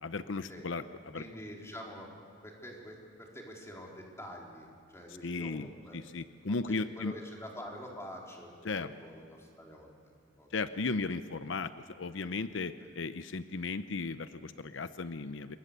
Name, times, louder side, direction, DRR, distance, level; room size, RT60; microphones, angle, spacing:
voice 1, 0.0-1.2 5.2-5.7 5.9-7.2 8.6-8.9 10.5-15.6, left 3 dB, 85° left, 12 dB, 0.7 m, -36 dB
voice 2, 1.1-2.1 2.4-6.0 6.7-10.1 10.4-10.5, equal, 15° left, -1 dB, 4.2 m, -46 dB
26.5 x 22.5 x 6.9 m, 2.3 s
head